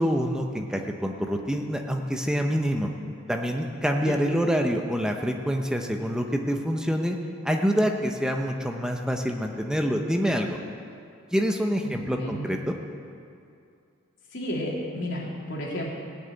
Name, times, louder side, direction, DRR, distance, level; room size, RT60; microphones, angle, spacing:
voice 1, 0.0-2.9 3.3-7.2 7.4-10.6 11.3-12.8, equal, 5° right, 3 dB, 0.8 m, -26 dB
voice 2, 11.8-12.5 14.3-15.9, equal, 60° left, -4 dB, 3.2 m, -32 dB
16.0 x 6.8 x 9.1 m, 2.5 s
head